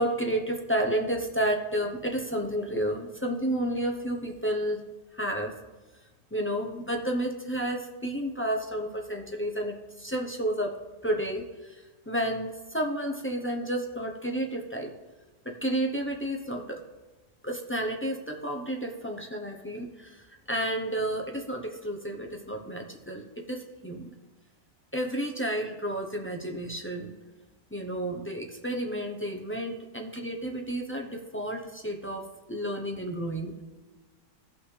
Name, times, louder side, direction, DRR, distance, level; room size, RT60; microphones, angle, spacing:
voice 1, 0.0-4.8 5.1-5.5 6.3-10.8 11.0-14.9 15.4-16.8 17.4-24.1 24.9-27.1 27.7-33.6, right 1 dB, 15° left, 1 dB, 0.4 m, -31 dB
16.0 x 5.9 x 3.3 m, 1.2 s
omnidirectional pair, 1.6 m